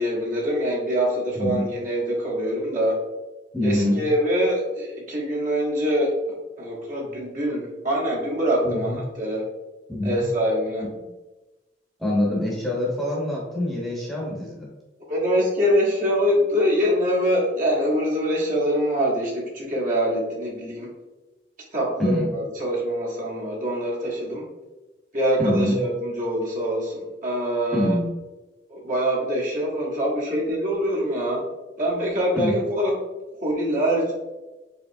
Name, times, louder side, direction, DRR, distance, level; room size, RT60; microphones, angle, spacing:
voice 1, 0.0-3.0 3.6-6.1 6.6-9.5 10.0-10.8 15.1-20.9 21.7-24.4 25.1-28.0 28.7-31.4 31.8-32.9 33.4-34.1, equal, 45° right, -4 dB, 1.2 m, -24 dB
voice 2, 1.3-1.6 3.5-4.0 8.6-9.0 9.9-10.2 12.0-14.7 22.0-22.3 25.4-25.8 27.7-28.1 32.4-32.6, left 1 dB, ahead, -5 dB, 0.9 m, -25 dB
4.9 x 3.1 x 2.7 m, 1.1 s
head